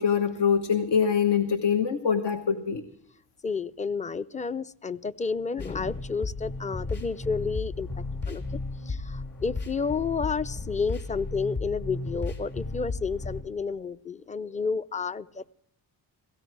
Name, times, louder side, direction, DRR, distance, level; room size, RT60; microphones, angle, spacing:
voice 1, 0.0-2.8, left 7 dB, 65° left, 8 dB, 1.3 m, -24 dB
voice 2, 3.4-7.9 8.3-8.6 8.9-15.5, left 5 dB, 15° left, 17 dB, 0.6 m, -31 dB
sound 1, 5.6-13.4, left 3 dB, 50° left, 5.6 m, -34 dB
17.5 x 16.0 x 4.7 m, 0.74 s
supercardioid pair, 55°, 43 cm